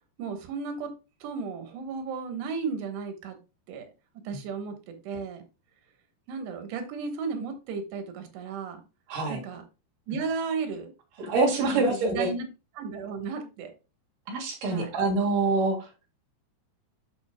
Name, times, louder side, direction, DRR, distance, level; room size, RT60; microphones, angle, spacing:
voice 1, 0.2-0.9 1.2-3.4 3.7-3.9 4.3-5.4 6.3-8.8 9.3-9.6 10.1-10.9 11.7-12.5 12.8-13.7 14.7-14.9, right 5 dB, 85° right, 7 dB, 3.4 m, -34 dB
voice 2, 11.2-12.3 14.3-15.8, right 3 dB, 60° right, 1 dB, 3.1 m, -25 dB
12.5 x 4.9 x 2.2 m, 0.30 s
omnidirectional pair, 4.7 m